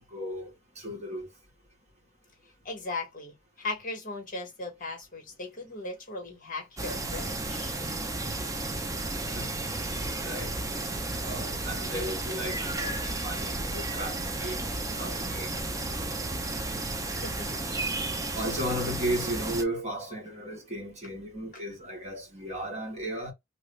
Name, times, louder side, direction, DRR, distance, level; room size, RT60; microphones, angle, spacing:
voice 1, 0.1-1.3 9.3-9.5 10.2-10.6 11.1-13.0 13.2-14.6 14.9-15.6 18.3-23.3, right 1 dB, 35° right, 1.3 m, -35 dB
voice 2, 2.6-7.8 17.0-17.5, left 2 dB, 40° left, 1.2 m, -38 dB
sound 1, 6.8-19.6, right 2 dB, 15° right, 0.6 m, -33 dB
2.9 x 2.5 x 3.1 m
head